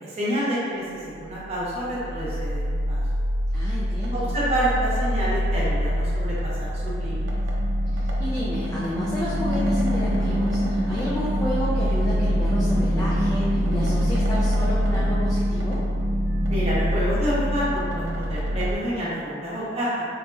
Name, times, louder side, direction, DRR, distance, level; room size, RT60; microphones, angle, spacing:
voice 1, 0.0-3.0 4.1-7.3 16.5-20.0, equal, 30° right, -9 dB, 0.8 m, -28 dB
sound 1, 1.3-18.7, equal, 90° right, 0.5 m, -24 dB
voice 2, 3.5-4.4 7.9-15.8, equal, 15° left, -8 dB, 0.3 m, -31 dB
4.0 x 2.8 x 2.2 m, 2.4 s
head